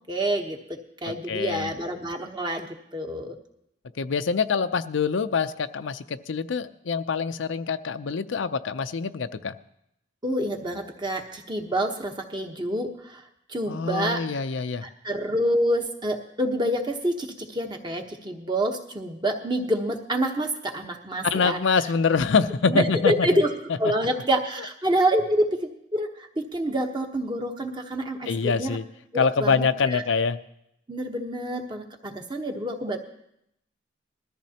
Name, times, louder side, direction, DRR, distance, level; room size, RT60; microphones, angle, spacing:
voice 1, 0.1-2.7 2.9-3.3 10.2-13.2 13.5-14.2 14.8-21.6 22.6-23.5 23.8-25.6 25.9-28.8 29.1-30.0 30.9-33.0, right 1 dB, 25° right, 3 dB, 1.0 m, -27 dB
voice 2, 1.1-1.7 4.0-9.5 13.7-14.8 21.3-23.4 28.3-28.8 29.2-30.4, left 5 dB, 85° left, 11 dB, 0.5 m, -25 dB
20.5 x 13.5 x 2.9 m, 0.78 s
head